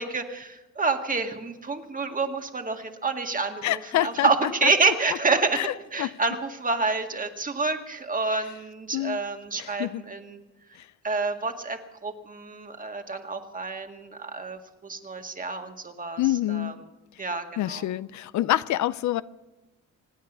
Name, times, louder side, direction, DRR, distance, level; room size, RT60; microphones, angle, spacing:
voice 1, 0.0-5.6 5.9-10.4 11.0-16.2 16.5-16.7 17.2-17.8, right 4 dB, 25° right, 1.8 m, -28 dB
voice 2, 3.6-4.7 5.5-6.1 8.9-9.2 9.6-10.0 10.8-10.9 16.2-16.7 17.6-19.2, left 14 dB, 70° left, 0.5 m, -27 dB
25.5 x 9.2 x 6.2 m
cardioid pair, 90°, 30 cm